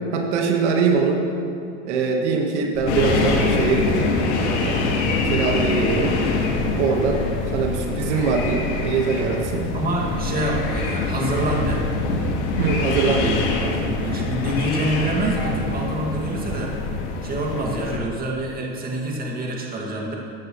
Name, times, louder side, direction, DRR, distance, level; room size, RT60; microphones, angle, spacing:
voice 1, 0.1-1.3 1.8-4.1 4.4-4.9 5.2-6.2 6.8-7.3 7.5-9.7 12.6-13.8, right 5 dB, 80° right, 2 dB, 1.4 m, -22 dB
Purr, 2.7-18.2, left 3 dB, 30° left, 2.8 m, -34 dB
sound 1, 2.9-18.0, left 3 dB, 80° left, 1.8 m, -25 dB
voice 2, 9.7-11.8 14.0-16.7 17.2-20.1, right 1 dB, 25° right, -2 dB, 2.0 m, -26 dB
14.5 x 10.0 x 3.1 m, 2.6 s
supercardioid pair, 125°, 34 cm